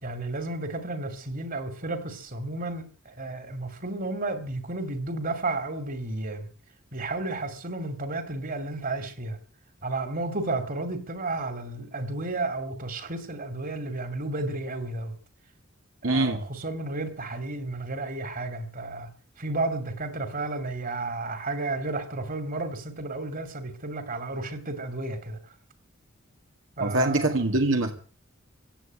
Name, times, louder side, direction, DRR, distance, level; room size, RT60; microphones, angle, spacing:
voice 1, 0.0-6.5 6.9-9.4 9.8-15.1 16.0-19.1 19.4-25.4 26.8-27.4, right 2 dB, 45° right, 2.7 m, -32 dB
voice 2, 16.0-16.4 26.8-27.9, right 2 dB, 75° right, 2.0 m, -23 dB
16.0 x 8.5 x 9.0 m
head